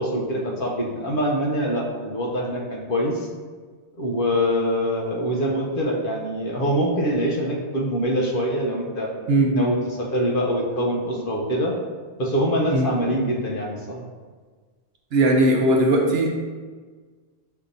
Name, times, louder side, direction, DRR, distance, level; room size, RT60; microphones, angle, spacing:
voice 1, 0.0-3.3 3.9-9.1 9.5-11.7 12.2-14.0, equal, 60° left, -2 dB, 0.8 m, -24 dB
voice 2, 9.3-9.7 12.7-12.9 15.1-16.4, right 1 dB, 70° right, 0 dB, 0.9 m, -19 dB
6.5 x 2.7 x 2.6 m, 1.5 s
omnidirectional pair, 1.1 m